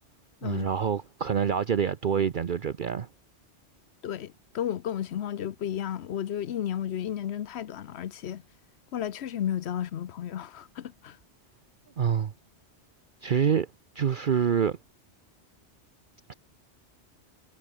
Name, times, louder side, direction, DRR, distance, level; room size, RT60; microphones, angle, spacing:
voice 1, 0.4-3.1 12.0-12.3 13.2-13.7 14.0-14.8 16.3-16.4, right 7 dB, 50° right, 0.8 m, -26 dB
voice 2, 4.0-8.4 8.9-11.2, left 10 dB, 70° left, 1.0 m, -33 dB
omnidirectional pair, 1.2 m